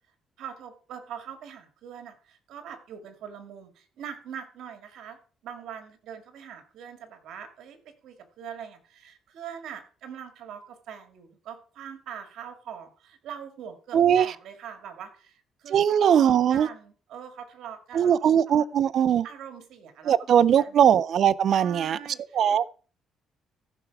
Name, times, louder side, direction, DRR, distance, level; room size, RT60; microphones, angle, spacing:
voice 1, 0.4-18.6 19.2-20.8 21.5-22.7, right 8 dB, 65° right, 2.1 m, -43 dB
voice 2, 13.9-14.3 15.7-16.7 17.9-19.3 20.1-22.0 22.4-22.6, right 9 dB, 50° right, 0.4 m, -20 dB
14.0 x 6.0 x 4.8 m
cardioid pair, 160°, 0 cm